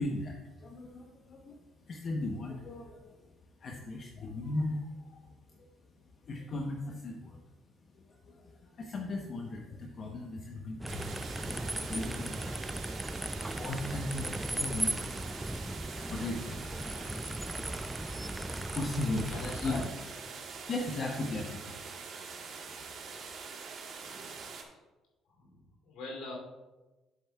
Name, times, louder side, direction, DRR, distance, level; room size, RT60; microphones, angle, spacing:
voice 1, 0.0-1.6 1.9-3.2 3.6-5.7 6.2-7.4 7.9-12.6 13.3-15.0 16.1-19.8 20.3-21.8 22.7-23.0, left 2 dB, 50° left, 1 dB, 0.9 m, -38 dB
sound 1, 10.8-19.9, right 1 dB, 10° right, 0.3 m, -37 dB
sound 2, 10.9-24.6, right 5 dB, 60° right, 1.4 m, -44 dB
voice 2, 19.0-19.8 24.0-24.8 25.3-26.4, left 2 dB, 75° left, -1 dB, 2.9 m, -44 dB
10.5 x 7.8 x 2.3 m, 1.1 s
supercardioid pair, 65°, 0 cm